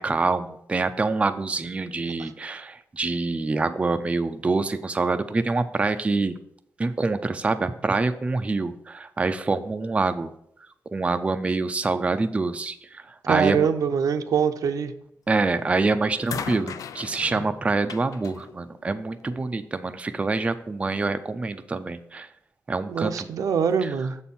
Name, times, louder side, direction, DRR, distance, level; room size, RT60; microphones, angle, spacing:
voice 1, 0.0-6.3 6.8-10.3 10.9-13.7 15.3-22.3 22.7-23.3 23.8-23.9, right 3 dB, 20° right, 9 dB, 0.4 m, -26 dB
voice 2, 13.2-14.9 22.9-24.1, right 7 dB, 90° right, 8 dB, 0.6 m, -24 dB
sound 1, 15.3-15.7 16.3-19.5 20.6-20.7, left 7 dB, 80° left, 0.4 m, -38 dB
7.0 x 4.3 x 5.4 m, 0.73 s
wide cardioid pair, 155°, 6 cm